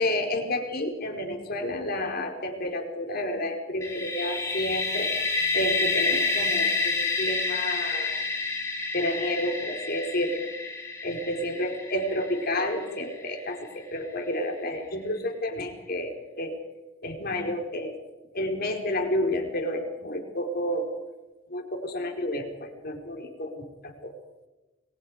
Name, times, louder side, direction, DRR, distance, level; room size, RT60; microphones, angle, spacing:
voice 1, 0.0-5.1 5.5-8.1 8.9-10.5 11.0-16.5 17.0-17.9 18.3-20.9 21.5-24.1, left 1 dB, 45° left, 3 dB, 4.6 m, -30 dB
sound 1, 3.8-13.5, left 4 dB, 15° left, 4.4 m, -29 dB
30.0 x 22.5 x 5.0 m, 1.1 s
head